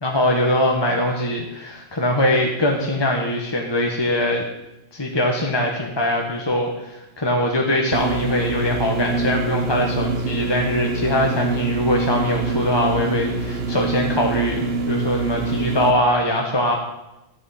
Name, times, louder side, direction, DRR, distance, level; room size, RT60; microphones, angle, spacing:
voice 1, 0.0-4.4 4.9-16.8, left 1 dB, 25° left, 0 dB, 1.3 m, -22 dB
sound 1, 7.9-15.9, right 3 dB, 75° right, 1.3 m, -25 dB
14.0 x 7.8 x 5.7 m, 0.94 s
omnidirectional pair, 1.1 m